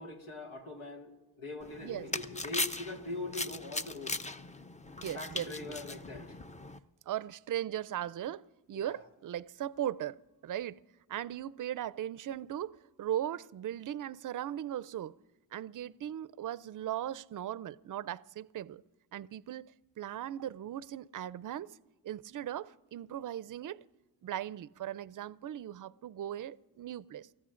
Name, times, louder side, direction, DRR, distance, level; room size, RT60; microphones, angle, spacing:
voice 1, 0.0-4.2 5.1-6.4 8.7-9.0, left 2 dB, 80° left, 1.9 m, -42 dB
sound 1, 1.6-6.8, left 2 dB, 15° left, 0.7 m, -39 dB
voice 2, 5.0-5.8 7.1-10.8 11.1-15.1 15.5-18.8 19.1-21.8 22.0-23.8 24.2-27.3, right 11 dB, 40° right, 0.6 m, -38 dB
29.0 x 14.0 x 2.5 m
hypercardioid pair, 40°, 48 cm